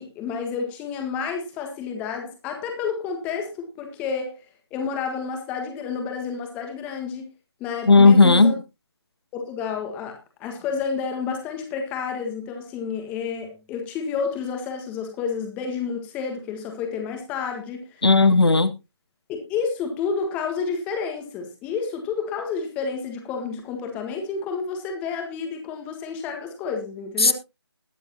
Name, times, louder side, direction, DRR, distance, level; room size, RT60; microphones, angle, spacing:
voice 1, 0.0-4.4 4.7-7.2 7.6-8.5 9.3-18.1 19.3-27.3, left 5 dB, 10° left, 1.5 m, -30 dB
voice 2, 7.9-8.5 18.0-18.7 27.2-27.3, left 3 dB, 65° left, 1.0 m, -14 dB
20.5 x 7.1 x 2.8 m
figure-of-eight pair, 155°, 14 cm